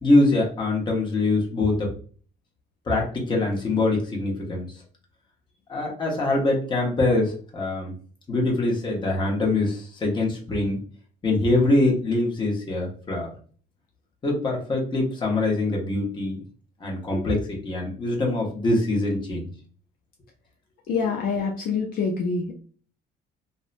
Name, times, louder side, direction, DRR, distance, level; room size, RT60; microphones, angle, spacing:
voice 1, 0.0-1.9 2.9-4.7 5.7-7.9 8.3-10.8 11.2-13.3 14.2-16.4 16.8-19.5, left 2 dB, 25° left, -2 dB, 0.9 m, -23 dB
voice 2, 20.9-22.5, left 5 dB, 60° left, 1 dB, 0.5 m, -26 dB
2.6 x 2.1 x 2.5 m, 0.43 s
cardioid pair, 110°, 17 cm